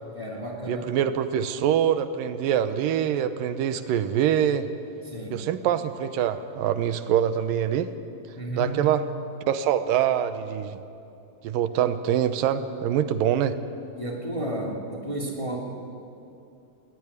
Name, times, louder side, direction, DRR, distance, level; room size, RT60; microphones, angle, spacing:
voice 1, 0.1-0.9 5.0-5.4 8.4-8.8 14.0-15.6, right 1 dB, 10° left, -1 dB, 1.8 m, -32 dB
voice 2, 0.7-4.7 5.3-7.9 8.6-9.0 9.5-10.8 11.4-13.6, right 10 dB, 90° right, 11 dB, 2.6 m, -24 dB
19.0 x 19.0 x 9.7 m, 2.6 s
omnidirectional pair, 3.9 m